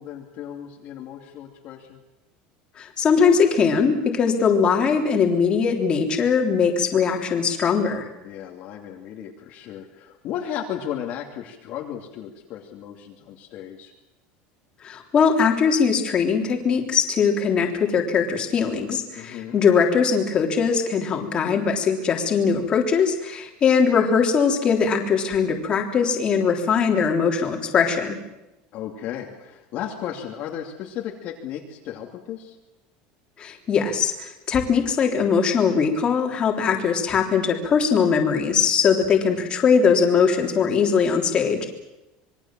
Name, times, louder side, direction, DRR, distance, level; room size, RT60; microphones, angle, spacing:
voice 1, 0.0-2.0 8.2-13.9 19.1-19.6 28.7-32.6, left 10 dB, 45° left, 0 dB, 2.7 m, -35 dB
voice 2, 2.8-8.1 14.8-28.2 33.4-41.7, left 6 dB, 25° left, 2 dB, 3.5 m, -21 dB
26.5 x 22.5 x 7.6 m, 0.97 s
cardioid pair, 165°, 4 cm